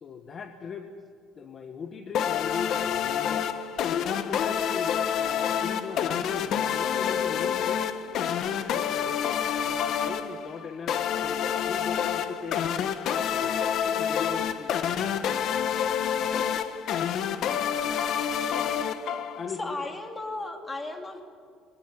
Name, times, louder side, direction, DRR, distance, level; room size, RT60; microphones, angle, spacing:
voice 1, 0.0-0.9 1.3-3.5 3.9-7.9 8.5-9.2 9.7-12.9 13.3-15.3 19.4-20.0, left 6 dB, 35° left, 6 dB, 1.4 m, -39 dB
sound 1, 2.1-19.6, left 8 dB, 55° left, 1.3 m, -28 dB
voice 2, 19.6-21.2, left 2 dB, 15° left, 4 dB, 2.6 m, -35 dB
22.0 x 20.5 x 9.8 m, 2.1 s
cardioid pair, 150°, 0 cm